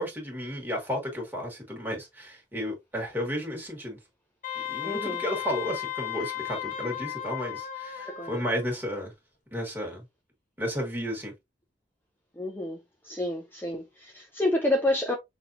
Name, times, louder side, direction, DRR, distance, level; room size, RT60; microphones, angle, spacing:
voice 1, 0.0-4.0 4.6-9.1 9.5-10.0 10.6-11.3, equal, 10° right, 1.7 m, -33 dB
Wind instrument woodwind instrument, 4.4-8.6, left 11 dB, 45° left, 1.0 m, -35 dB
voice 2, 4.8-5.2 8.0-8.3 12.4-12.8 13.0-15.2, left 1 dB, 10° left, 0.6 m, -29 dB
5.9 x 2.8 x 2.6 m
head